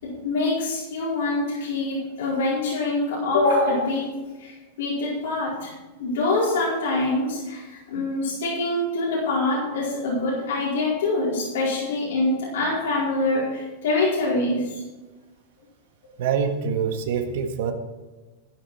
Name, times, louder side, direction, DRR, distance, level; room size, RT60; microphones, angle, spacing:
voice 1, 0.0-4.1 4.4-5.7 6.0-14.8, left 2 dB, 85° left, -6 dB, 4.5 m, -25 dB
voice 2, 16.2-17.7, right 7 dB, 70° right, 5 dB, 1.6 m, -25 dB
12.0 x 9.8 x 4.3 m, 1.2 s
supercardioid pair, 155°, 0 cm